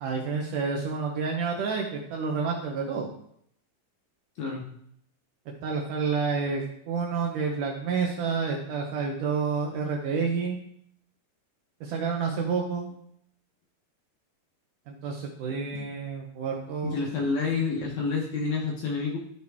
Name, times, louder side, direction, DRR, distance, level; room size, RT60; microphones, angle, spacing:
voice 1, 0.0-3.1 5.6-10.6 11.8-12.9 14.9-17.0, right 5 dB, 70° right, 0 dB, 2.1 m, -29 dB
voice 2, 16.8-19.2, left 4 dB, 65° left, -2 dB, 2.0 m, -28 dB
13.5 x 4.6 x 3.5 m, 0.69 s
omnidirectional pair, 4.5 m